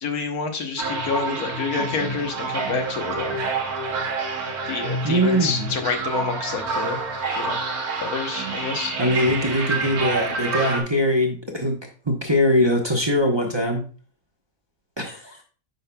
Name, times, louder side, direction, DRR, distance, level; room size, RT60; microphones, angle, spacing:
voice 1, 0.0-3.4 4.7-7.0 7.4-7.6 8.0-8.9, left 5 dB, 85° left, 4 dB, 1.6 m, -28 dB
sound 1, 0.8-10.8, right 3 dB, 90° right, 1.7 m, -28 dB
voice 2, 5.0-5.7 9.0-11.8 12.1-13.8 15.0-15.4, equal, 20° right, 0 dB, 0.9 m, -22 dB
9.1 x 5.6 x 2.3 m, 0.38 s
omnidirectional pair, 1.5 m